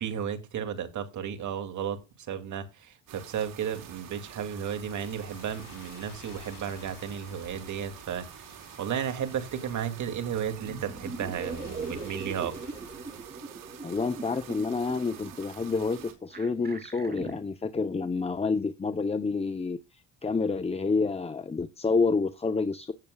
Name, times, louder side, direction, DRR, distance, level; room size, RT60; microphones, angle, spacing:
voice 1, 0.0-12.7, right 8 dB, 60° right, 2.5 m, -34 dB
sound 1, 3.1-16.1, right 10 dB, 80° right, 4.2 m, -48 dB
sound 2, 3.7-13.2, left 7 dB, 80° left, 4.9 m, -52 dB
sound 3, 10.6-17.4, right 4 dB, 30° right, 2.8 m, -41 dB
voice 2, 13.8-22.9, left 4 dB, 20° left, 0.8 m, -29 dB
16.5 x 6.9 x 2.4 m
cardioid pair, 95°, 33 cm